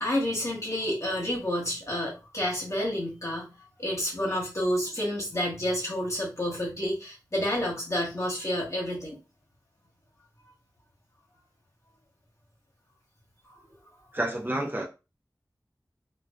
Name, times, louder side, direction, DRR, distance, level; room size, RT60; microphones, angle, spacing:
voice 1, 0.0-3.5 3.8-9.2, equal, 45° left, -3 dB, 1.1 m, -29 dB
voice 2, 14.1-14.8, right 1 dB, 30° right, 0 dB, 0.6 m, -29 dB
2.3 x 2.3 x 2.3 m, 0.28 s
wide cardioid pair, 45°, 7 cm